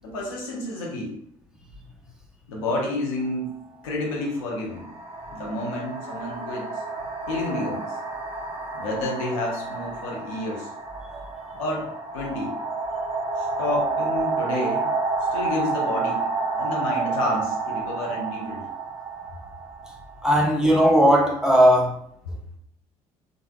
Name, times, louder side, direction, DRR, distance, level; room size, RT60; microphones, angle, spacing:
voice 1, 0.0-1.1 2.5-3.5 3.8-4.9 5.3-6.8 7.3-8.0 8.7-10.7 11.6-12.5 13.4-14.9 15.3-16.2 16.5-18.6, left 2 dB, 70° left, -2 dB, 0.8 m, -30 dB
sound 1, 3.2-3.4 4.4-21.0, right 4 dB, 35° right, 0.6 m, -30 dB
voice 2, 20.2-22.0, equal, 5° right, -2 dB, 0.8 m, -17 dB
3.2 x 2.4 x 2.2 m, 0.70 s
figure-of-eight pair, 50°, 18 cm